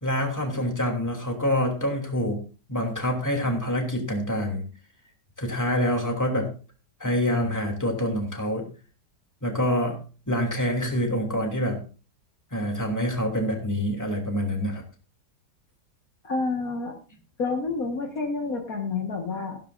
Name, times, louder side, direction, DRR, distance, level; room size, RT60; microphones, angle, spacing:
voice 1, 0.0-2.4 2.7-4.7 5.4-6.5 7.0-8.6 9.4-10.0 10.3-11.8 12.5-14.8, equal, 10° left, 1 dB, 2.9 m, -26 dB
voice 2, 16.2-17.0 17.4-19.6, left 3 dB, 55° left, 2 dB, 2.0 m, -29 dB
15.0 x 12.5 x 2.5 m, 0.35 s
omnidirectional pair, 1.8 m